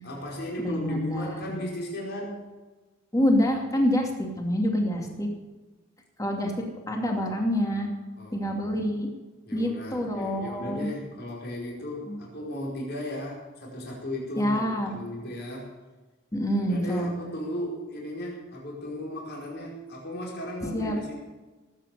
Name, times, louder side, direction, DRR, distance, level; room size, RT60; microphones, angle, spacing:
voice 1, 0.0-2.5 8.2-8.7 9.4-15.7 16.5-21.1, left 1 dB, 50° left, -3 dB, 4.9 m, -36 dB
voice 2, 0.6-1.5 3.1-4.1 4.4-5.3 6.2-6.5 6.9-7.9 8.3-9.1 9.5-10.9 12.1-12.2 14.4-14.9 16.3-17.1 20.7-21.0, equal, 15° left, 1 dB, 2.6 m, -26 dB
18.0 x 9.1 x 6.8 m, 1.2 s
head